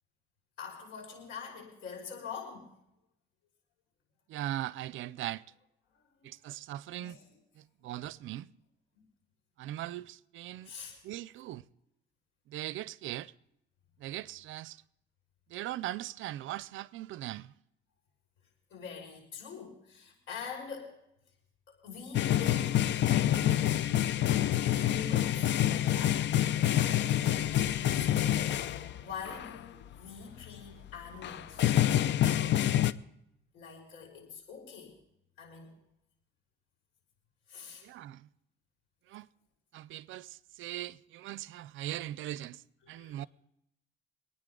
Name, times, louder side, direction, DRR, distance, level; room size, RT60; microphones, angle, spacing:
voice 1, 0.6-2.7 5.9-6.4 7.0-7.4 7.9-8.0 8.9-9.0 10.6-11.0 18.7-21.0 21.7-23.5 24.6-26.3 26.5-31.7 32.2-32.6 33.5-35.0 35.4-35.8 37.5-37.9 42.9-43.2, left 6 dB, 80° left, 5.7 m, -45 dB
voice 2, 4.3-5.4 6.2-7.2 7.8-8.5 9.6-10.7 11.0-11.6 12.5-13.3 14.0-14.8 15.5-17.5 37.8-38.3 39.1-39.3 39.7-42.6 42.9-43.3, right 14 dB, 85° right, 0.5 m, -39 dB
sound 1, 22.1-29.0 29.3-29.6 30.4-30.5 30.9-31.0 31.2-32.9, left 12 dB, 65° left, 0.6 m, -27 dB
25.0 x 9.6 x 3.9 m
cardioid pair, 90°, 20 cm